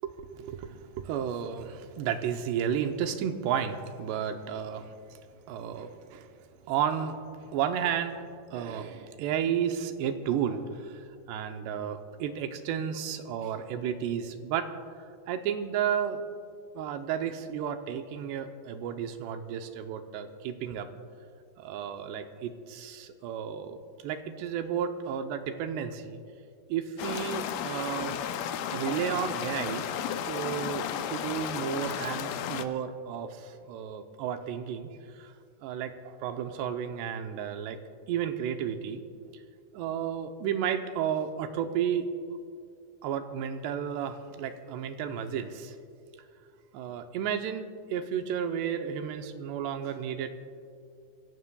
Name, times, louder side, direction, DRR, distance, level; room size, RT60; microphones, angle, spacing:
voice 1, 0.0-5.2 5.5-6.3 6.7-8.2 8.5-14.7 15.3-16.2 16.8-20.9 21.6-23.8 24.0-26.2 26.7-28.2 28.7-29.9 30.3-35.3 35.6-37.8 38.1-39.0 39.7-42.1 43.0-45.7 46.7-50.3, right 8 dB, 85° right, 7 dB, 2.9 m, -32 dB
sound 1, 27.0-32.7, left 9 dB, 85° left, 2.0 m, -33 dB
26.0 x 16.5 x 2.3 m, 2.4 s
omnidirectional pair, 4.8 m